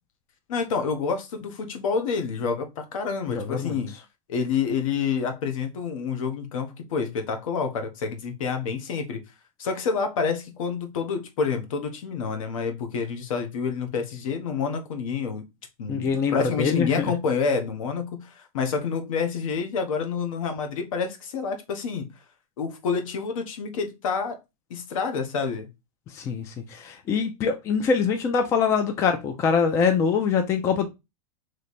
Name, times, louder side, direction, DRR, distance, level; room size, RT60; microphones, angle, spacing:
voice 1, 0.5-3.9 4.3-9.2 9.6-15.4 15.8-22.1 22.6-24.4 24.7-25.7, left 5 dB, 70° left, 1.1 m, -28 dB
voice 2, 3.3-3.8 15.9-17.1 26.1-30.9, left 6 dB, 15° left, 0.4 m, -24 dB
3.2 x 3.1 x 4.1 m
supercardioid pair, 165°, 18 cm